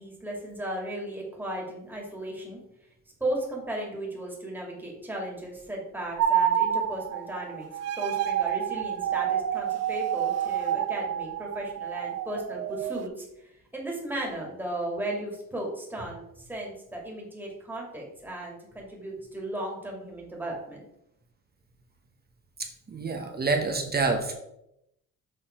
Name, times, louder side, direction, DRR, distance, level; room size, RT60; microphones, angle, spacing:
voice 1, 0.0-2.6 3.2-20.8, right 1 dB, 5° right, -2 dB, 2.2 m, -36 dB
sound 1, 6.2-13.1, right 10 dB, 60° right, 0.5 m, -28 dB
voice 2, 22.6-24.3, right 3 dB, 30° right, 2 dB, 1.1 m, -28 dB
6.7 x 3.6 x 4.4 m, 0.81 s
cardioid pair, 90°, 30 cm